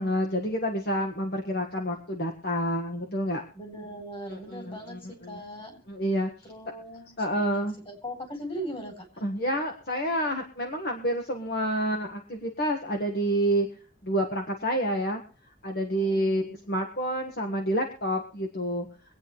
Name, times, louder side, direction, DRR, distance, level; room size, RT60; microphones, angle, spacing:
voice 1, 0.0-3.4 4.3-5.4 5.9-6.3 7.2-7.7 9.2-13.7 14.0-15.2 15.6-18.9, equal, 50° left, 3 dB, 1.5 m, -28 dB
voice 2, 3.5-5.8 6.4-9.0 16.0-16.6, equal, 30° left, 4 dB, 3.7 m, -40 dB
24.0 x 8.7 x 3.1 m, 0.44 s
head